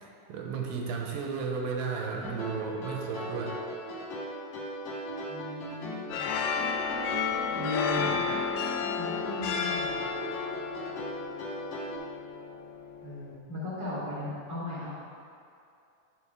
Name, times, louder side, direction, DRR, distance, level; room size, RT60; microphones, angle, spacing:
voice 1, 0.0-3.6, right 5 dB, 75° right, 0 dB, 2.3 m, -34 dB
sound 1, 2.2-12.0, left 1 dB, 60° left, 2.5 m, -38 dB
voice 2, 5.2-6.3 7.5-8.2 9.0-10.0 13.0-14.9, left 2 dB, 40° left, -9 dB, 0.7 m, -36 dB
sound 2, 6.1-13.4, left 6 dB, 80° left, 2.3 m, -32 dB
11.0 x 5.1 x 3.5 m, 2.5 s
omnidirectional pair, 4.5 m